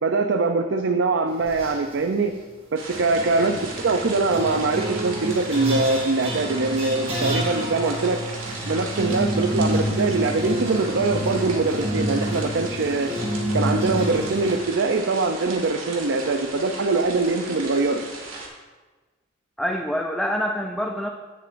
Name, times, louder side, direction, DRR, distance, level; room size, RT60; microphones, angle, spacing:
voice 1, 0.0-2.4 2.7-8.2 8.6-13.1 13.5-18.1, right 3 dB, 65° right, 6 dB, 0.5 m, -23 dB
sound 1, 1.4-2.0 2.9-14.6, equal, 30° right, 2.4 m, -29 dB
sound 2, 2.8-18.5, right 3 dB, 85° right, 2.1 m, -37 dB
voice 2, 19.6-21.1, equal, ahead, 1 dB, 0.5 m, -26 dB
16.0 x 7.3 x 2.6 m, 1.3 s
head